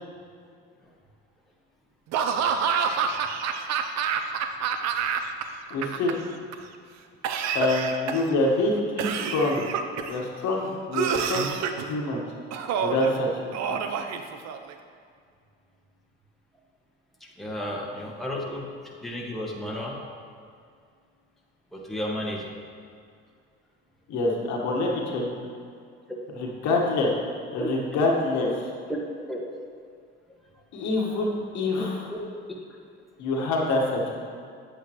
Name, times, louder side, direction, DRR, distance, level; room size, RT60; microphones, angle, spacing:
Laughter / Cough, 2.1-5.4 5.7-6.5 7.2-8.4 9.0-10.2 10.9-11.9 12.5-13.1 13.5-14.7, right 7 dB, 55° right, 0.7 m, -27 dB
voice 1, 5.7-6.2 7.5-9.6 10.1-11.5 11.8-12.2 12.8-13.3 13.7-13.8 24.1-25.4 26.4-27.1 27.5-28.5 30.7-32.1 33.2-34.0, left 2 dB, 65° left, -1 dB, 1.6 m, -26 dB
voice 2, 17.2-18.7 19.0-20.0 21.7-22.5 27.6-27.7 28.5-28.6 29.3-29.4 31.1-31.2 31.7-32.2 32.5-32.6, left 1 dB, ahead, -3 dB, 1.6 m, -33 dB
9.0 x 8.3 x 3.1 m, 2.2 s
hypercardioid pair, 65°, 31 cm